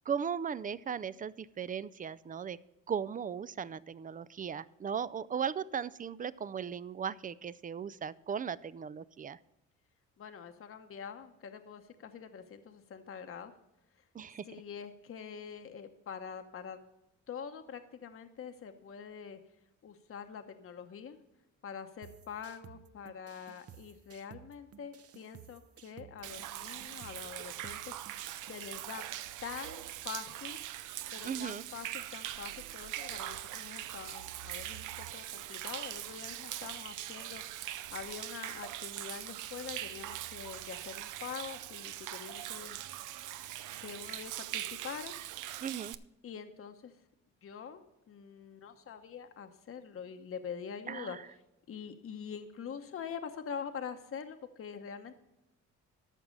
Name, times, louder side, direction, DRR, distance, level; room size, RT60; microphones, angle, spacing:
voice 1, 0.1-2.6 2.9-9.4 14.1-14.5 31.2-31.6 45.6-45.9 50.9-51.2, right 7 dB, 30° right, 19 dB, 0.4 m, -37 dB
voice 2, 10.2-13.5 14.4-16.8 17.3-19.4 19.8-21.2 21.6-27.9 28.5-29.0 29.4-30.6 31.1-37.4 37.9-42.8 43.8-45.1 46.2-46.9 47.4-47.8 48.1-51.2 51.7-55.2, left 7 dB, 45° left, 7 dB, 1.0 m, -45 dB
sound 1, 22.0-28.6, right 8 dB, 50° right, 0.8 m, -56 dB
Human voice / Rain / Stream, 26.2-45.9, right 13 dB, 85° right, 0.6 m, -42 dB
13.5 x 6.0 x 5.3 m, 0.92 s
cardioid pair, 90°, 30 cm